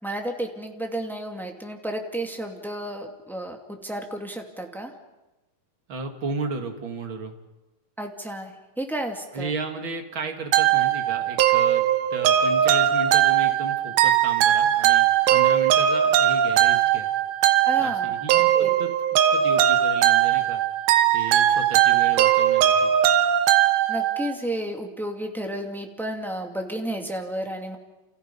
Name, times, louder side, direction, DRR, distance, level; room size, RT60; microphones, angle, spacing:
voice 1, 0.0-4.9 8.0-9.5 17.6-18.8 23.9-27.8, right 1 dB, ahead, 3 dB, 1.6 m, -32 dB
voice 2, 5.9-7.3 9.3-11.8 12.1-15.1 15.3-17.1 17.8-18.9 19.3-20.6 21.1-22.9, right 4 dB, 40° right, 5 dB, 2.4 m, -33 dB
sound 1, 10.5-24.3, right 11 dB, 90° right, 2.9 m, -20 dB
29.5 x 29.5 x 5.6 m, 1.1 s
omnidirectional pair, 4.2 m